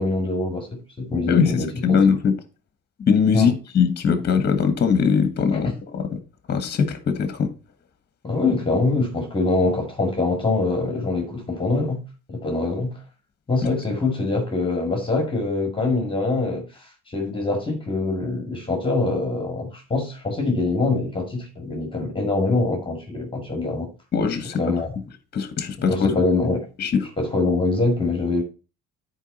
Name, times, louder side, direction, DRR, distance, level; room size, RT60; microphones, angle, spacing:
voice 1, 0.0-2.0 3.3-3.5 8.2-12.0 12.3-13.0 13.5-23.9 24.6-24.9 25.9-26.6 27.2-28.4, left 3 dB, 15° left, 2.0 m, -24 dB
voice 2, 1.3-2.4 3.0-6.2 6.5-7.5 24.1-24.6 25.3-26.1 26.8-27.1, left 6 dB, 30° left, 1.4 m, -21 dB
9.9 x 4.7 x 4.2 m
supercardioid pair, 95°, 32 cm